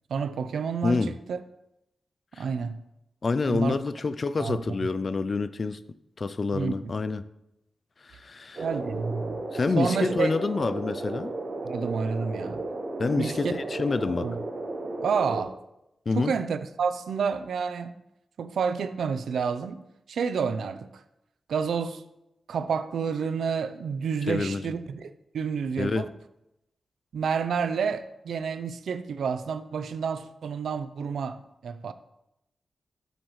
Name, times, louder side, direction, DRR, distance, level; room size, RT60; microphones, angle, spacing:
voice 1, 0.1-1.4 2.4-2.8 3.5-3.8 4.4-4.6 6.5-6.7 8.6-9.4 9.8-10.3 11.6-12.6 13.2-13.5 14.2-14.4 15.0-15.5 16.2-17.9 18.4-19.8 20.1-20.9 21.5-22.0 22.5-26.1 27.1-31.9, right 6 dB, 85° right, 0.6 m, -29 dB
voice 2, 0.8-1.1 2.4-2.5 3.2-5.8 6.2-7.3 8.0-8.7 9.5-11.3 13.0-14.3 16.1-16.3 24.3-24.7 25.8-26.1, left 4 dB, 35° left, 0.4 m, -27 dB
sound 1, 8.5-15.4, right 2 dB, 40° right, 2.1 m, -34 dB
13.0 x 8.0 x 3.2 m
wide cardioid pair, 170°, 0 cm